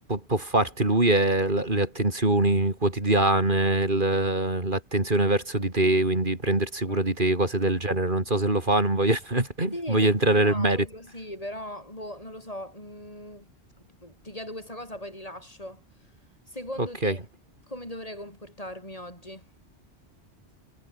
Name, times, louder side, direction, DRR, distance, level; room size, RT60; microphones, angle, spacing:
voice 1, 0.1-10.8 17.0-17.1, right 2 dB, 45° right, 4.0 m, -23 dB
voice 2, 9.7-13.5 14.0-15.8 16.5-17.2 17.7-19.5, left 1 dB, 35° left, 6.9 m, -39 dB
omnidirectional pair, 1.1 m